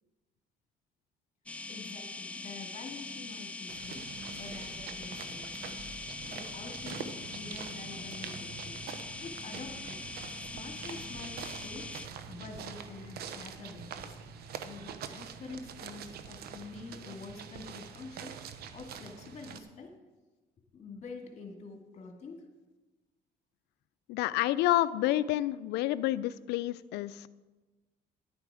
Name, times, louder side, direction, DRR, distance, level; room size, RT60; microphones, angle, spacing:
sound 1, 1.5-12.1, left 3 dB, 10° left, 0.5 m, -42 dB
voice 1, 1.7-4.1 4.4-8.8 9.2-11.9 12.3-14.2 14.6-18.3 18.7-19.9 20.7-22.5, left 4 dB, 40° left, 3 dB, 2.2 m, -47 dB
sound 2, 3.7-19.6, right 7 dB, 65° right, 0.9 m, -45 dB
voice 2, 24.1-27.3, left 15 dB, 85° left, 17 dB, 0.5 m, -29 dB
11.0 x 8.6 x 4.9 m, 1.2 s
cardioid pair, 110°, 17 cm